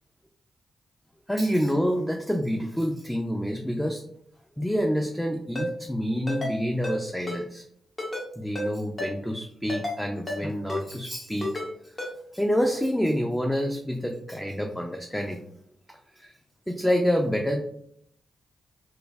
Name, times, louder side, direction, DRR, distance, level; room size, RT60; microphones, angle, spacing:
voice 1, 1.3-4.0 4.6-7.6 8.4-11.9 12.3-15.4 16.2-16.3 16.7-17.6, equal, 5° left, 2 dB, 0.4 m, -27 dB
Ringtone, 5.6-5.7 6.3-6.5 6.8-7.0 7.3-7.4 8.0-8.3 8.6-8.7 9.0-9.1 9.7-10.0 10.3-10.4 10.7-10.8 11.4-11.7 12.0-12.1, left 1 dB, 35° left, 1.0 m, -31 dB
3.1 x 2.5 x 2.3 m, 0.68 s
supercardioid pair, 50°, 0 cm